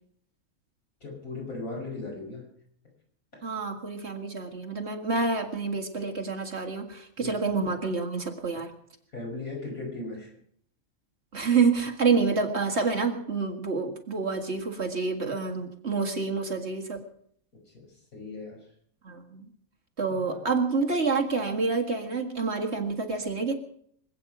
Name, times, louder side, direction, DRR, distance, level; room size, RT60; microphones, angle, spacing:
voice 1, 1.0-2.4 3.3-3.4 7.2-7.4 9.1-10.3 17.7-17.9 18.1-18.6 20.2-20.4, left 3 dB, 80° left, -1 dB, 6.1 m, -37 dB
voice 2, 3.4-8.7 11.3-17.0 19.0-19.5 20.0-23.5, right 4 dB, 50° right, 3 dB, 2.1 m, -28 dB
25.5 x 8.9 x 6.1 m, 0.64 s
omnidirectional pair, 1.5 m